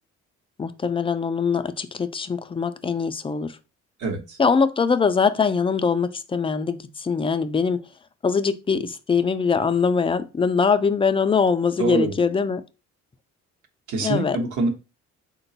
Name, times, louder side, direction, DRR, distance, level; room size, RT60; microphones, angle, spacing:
voice 1, 0.6-3.6 4.4-7.8 8.2-12.6 14.0-14.4, left 5 dB, 20° left, 0.4 m, -22 dB
voice 2, 4.0-4.4 11.8-12.1 13.9-14.7, right 3 dB, 75° right, 0.9 m, -25 dB
3.9 x 2.2 x 3.9 m
cardioid pair, 90°, 30 cm